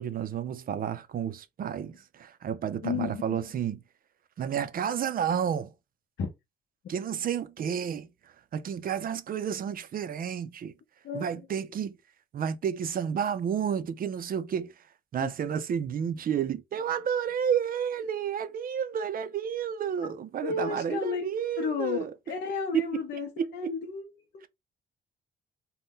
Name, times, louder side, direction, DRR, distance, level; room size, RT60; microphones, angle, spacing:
voice 1, 0.0-3.8 4.4-5.7 6.9-8.1 8.5-10.7 11.1-12.0 12.3-14.7 15.1-22.1 22.7-22.9 23.4-23.7, right 8 dB, 45° right, 0.4 m, -31 dB
voice 2, 2.8-3.4 6.2-6.3 11.0-11.3 15.2-15.3 20.0-20.1 20.4-21.3 21.6-22.0 22.3-24.1 24.3-24.5, left 5 dB, 60° left, 0.6 m, -32 dB
2.6 x 2.2 x 3.5 m
cardioid pair, 90°, 20 cm